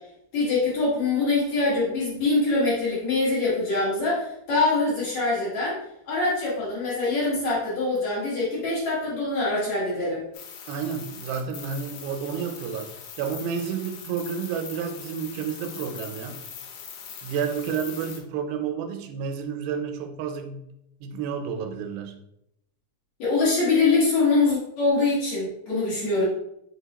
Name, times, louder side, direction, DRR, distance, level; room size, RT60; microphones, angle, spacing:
voice 1, 0.3-5.8 6.1-10.2 23.2-26.3, left 3 dB, 60° left, -7 dB, 2.0 m, -24 dB
sound 1, 10.3-18.2, left 7 dB, 80° left, 2.4 m, -41 dB
voice 2, 10.7-12.9 13.2-16.4 17.2-20.6 21.0-22.2, right 7 dB, 90° right, 5 dB, 2.5 m, -30 dB
5.7 x 2.2 x 4.0 m, 0.80 s
omnidirectional pair, 4.2 m